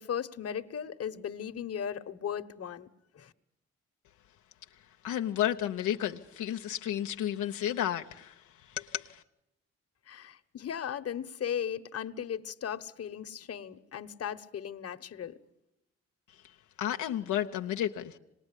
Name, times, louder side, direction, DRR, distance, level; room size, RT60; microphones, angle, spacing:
voice 1, 0.0-2.9 3.1-3.3 10.1-15.3, left 8 dB, 55° left, 1.2 m, -37 dB
voice 2, 5.0-9.2 16.8-18.2, left 11 dB, 90° left, 0.9 m, -32 dB
26.0 x 20.0 x 9.9 m
cardioid pair, 70°, 29 cm